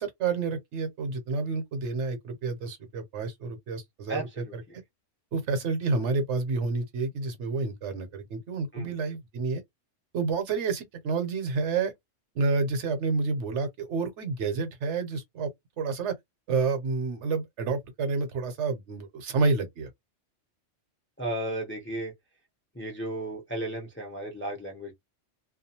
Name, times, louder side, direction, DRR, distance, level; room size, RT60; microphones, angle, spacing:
voice 1, 0.0-4.6 5.3-9.6 10.1-11.9 12.3-15.5 15.8-16.1 16.5-19.9, right 4 dB, 70° right, 1.0 m, -29 dB
voice 2, 4.1-4.5 8.7-8.9 21.2-22.1 22.7-24.9, right 1 dB, 15° left, 0.5 m, -34 dB
2.3 x 2.2 x 2.8 m
omnidirectional pair, 1.3 m